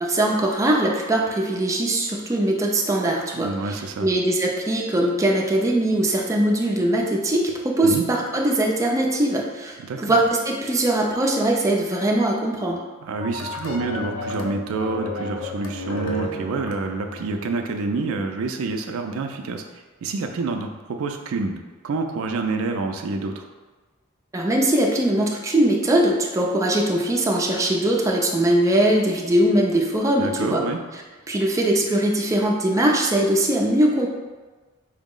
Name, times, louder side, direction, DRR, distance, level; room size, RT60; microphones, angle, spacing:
voice 1, 0.0-3.7 4.0-12.8 24.3-30.6 31.3-34.1, right 1 dB, 15° right, -1 dB, 0.4 m, -21 dB
voice 2, 3.4-4.1 7.8-8.1 9.8-10.2 13.0-19.6 20.0-23.4 30.2-30.8, right 3 dB, 80° right, 5 dB, 0.4 m, -27 dB
sound 1, 13.2-17.5, left 1 dB, 85° left, 0.5 m, -33 dB
4.5 x 2.0 x 3.6 m, 1.3 s
head